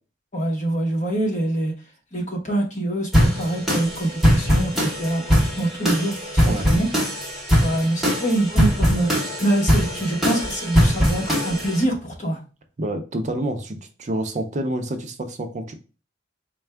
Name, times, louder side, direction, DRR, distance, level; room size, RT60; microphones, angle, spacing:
voice 1, 0.3-1.7 2.1-6.9 7.6-9.1 9.4-12.4, right 1 dB, 40° left, 1.1 m, -25 dB
sound 1, 3.1-11.8, equal, ahead, 1.0 m, -21 dB
voice 2, 12.8-15.7, right 1 dB, 40° right, 0.5 m, -28 dB
4.3 x 2.3 x 3.3 m
head